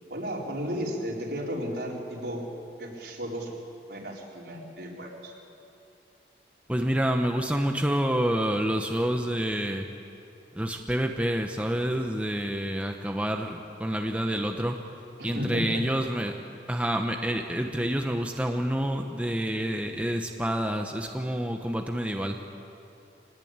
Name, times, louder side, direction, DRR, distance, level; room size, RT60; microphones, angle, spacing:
voice 1, 0.1-2.4 2.8-3.5 3.9-5.3 15.2-15.8, equal, 70° right, -2 dB, 4.5 m, -34 dB
voice 2, 6.7-9.9 10.5-14.8 15.2-16.3 16.7-22.4, equal, 5° right, 3 dB, 1.0 m, -28 dB
25.0 x 19.5 x 8.9 m, 2.8 s
head